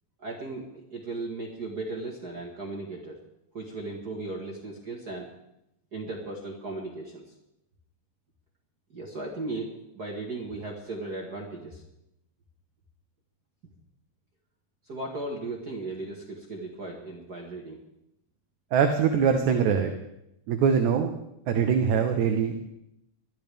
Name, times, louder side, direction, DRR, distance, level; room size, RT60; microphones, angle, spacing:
voice 1, 0.2-3.2 3.5-5.3 5.9-7.2 8.9-11.8 14.9-17.8, right 2 dB, 45° right, -1 dB, 1.3 m, -36 dB
voice 2, 18.7-19.9 20.5-21.1 21.5-22.7, right 7 dB, 70° right, 6 dB, 2.1 m, -23 dB
21.0 x 12.5 x 3.4 m, 0.85 s
omnidirectional pair, 3.8 m